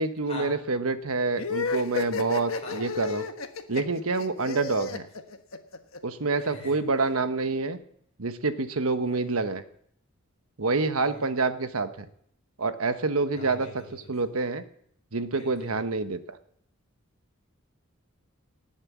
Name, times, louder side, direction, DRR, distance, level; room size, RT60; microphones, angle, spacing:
voice 1, 0.0-3.2 3.7-5.1 6.0-7.8 8.2-9.6 10.6-12.1 12.6-14.6 15.1-16.4, right 3 dB, 85° right, 10 dB, 1.2 m, -27 dB
sound 1, 1.4-6.0, left 4 dB, 70° left, 1.3 m, -32 dB
voice 2, 2.5-2.9 6.5-6.7 9.1-9.3 11.0-11.3 13.3-14.1 15.3-15.8, left 2 dB, 30° left, -1 dB, 6.4 m, -43 dB
18.5 x 8.8 x 7.5 m, 0.68 s
head